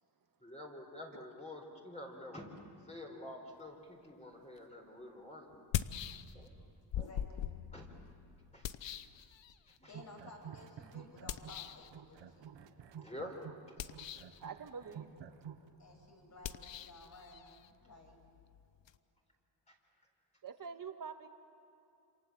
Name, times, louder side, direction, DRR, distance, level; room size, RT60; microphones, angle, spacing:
voice 1, 0.4-2.5 2.9-5.7 6.3-6.6 7.0-7.1 7.7-7.9 8.5-8.7 9.8-9.9 13.0-13.4, left 1 dB, 15° left, 0 dB, 4.3 m, -48 dB
sound 1, 4.6-4.7 5.5-6.6 6.9-9.8 11.3-11.9 13.7-14.4 16.4-19.0, left 10 dB, 80° left, 0.9 m, -42 dB
voice 2, 6.5-7.5 9.8-12.5 15.8-18.2, left 2 dB, 40° left, 1 dB, 6.5 m, -56 dB
sound 2, 9.8-11.6 11.9-15.7, right 8 dB, 75° right, 1.6 m, -50 dB
voice 3, 14.4-15.2 20.4-21.3, right 6 dB, 45° right, 6 dB, 1.9 m, -45 dB
28.5 x 27.0 x 7.7 m, 2.7 s
wide cardioid pair, 135°, 44 cm